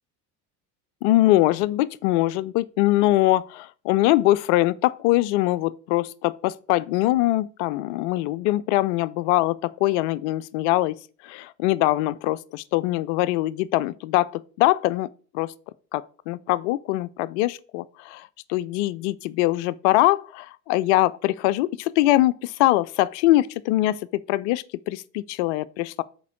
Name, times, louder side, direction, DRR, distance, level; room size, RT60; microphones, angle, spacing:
voice 1, 1.0-10.9 11.2-15.1 15.3-15.5 15.9-24.0 24.3-26.0, left 16 dB, 45° left, 0.4 m, -22 dB
6.6 x 4.5 x 6.2 m
figure-of-eight pair, 65°, 49 cm